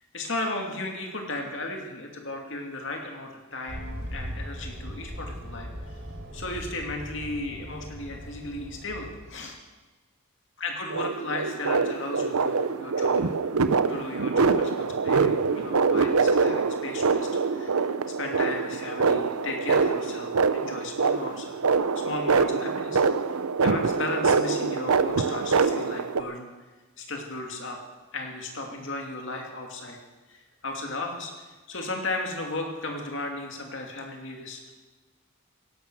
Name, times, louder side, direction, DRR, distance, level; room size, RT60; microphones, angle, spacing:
voice 1, 0.1-6.0 6.3-9.6 10.6-13.3 13.9-23.0 23.6-26.5 27.0-27.8 28.1-30.0 30.3-31.3 31.7-34.7, left 2 dB, 60° left, 2 dB, 2.7 m, -35 dB
sound 1, 3.7-9.4, equal, 55° right, 3.6 m, -39 dB
sound 2, 10.9-26.2, right 4 dB, 90° right, 0.7 m, -24 dB
17.0 x 12.0 x 6.3 m, 1.2 s
head